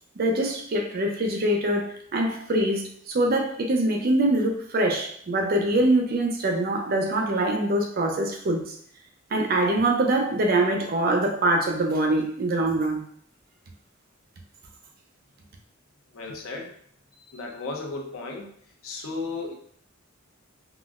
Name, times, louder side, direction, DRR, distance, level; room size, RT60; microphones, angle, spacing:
voice 1, 0.2-8.7 9.3-13.0, right 1 dB, 45° right, 2 dB, 0.5 m, -24 dB
voice 2, 16.1-16.7 17.3-18.5 18.8-19.5, left 3 dB, 85° left, 1 dB, 0.6 m, -34 dB
3.7 x 2.0 x 2.3 m, 0.63 s
head